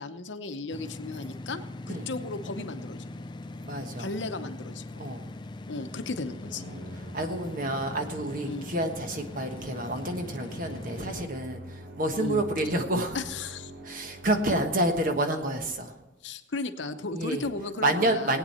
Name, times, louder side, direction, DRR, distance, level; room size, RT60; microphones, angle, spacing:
voice 1, 0.0-1.6 1.9-3.0 4.0-4.8 5.7-6.7 8.4-8.7 12.1-12.4 13.1-13.7 16.2-18.4, left 3 dB, 70° left, 9 dB, 0.8 m, -35 dB
sound 1, 0.7-11.3, left 2 dB, 25° left, 0.4 m, -41 dB
voice 2, 3.6-4.1 5.0-5.2 6.7-6.8 7.1-13.2 13.8-16.0 17.1-17.4 17.8-18.4, right 1 dB, 45° right, 5 dB, 1.3 m, -29 dB
Musical instrument, 6.4-14.9, equal, 85° right, 3.8 m, -46 dB
18.5 x 9.0 x 4.3 m, 1.1 s
head